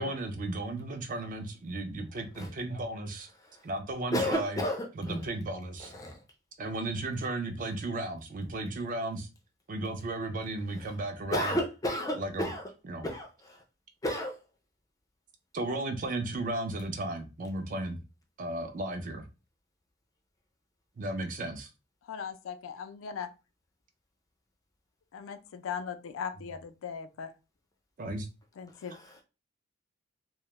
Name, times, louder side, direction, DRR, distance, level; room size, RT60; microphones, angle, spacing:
voice 1, 0.0-3.3 3.6-4.6 5.0-5.9 6.6-9.3 9.7-11.6 12.1-12.5 12.9-13.1 15.5-18.0 18.4-19.2 21.0-21.7 28.0-28.3, right 2 dB, 45° right, 0.4 m, -34 dB
voice 2, 4.1-5.2 5.8-6.2 11.3-12.6 13.0-13.6 14.0-14.4 28.9-29.1, equal, 20° left, 0.4 m, -32 dB
voice 3, 22.1-23.3 25.1-27.3 28.6-29.0, left 7 dB, 90° left, 0.4 m, -38 dB
2.2 x 2.0 x 2.9 m
head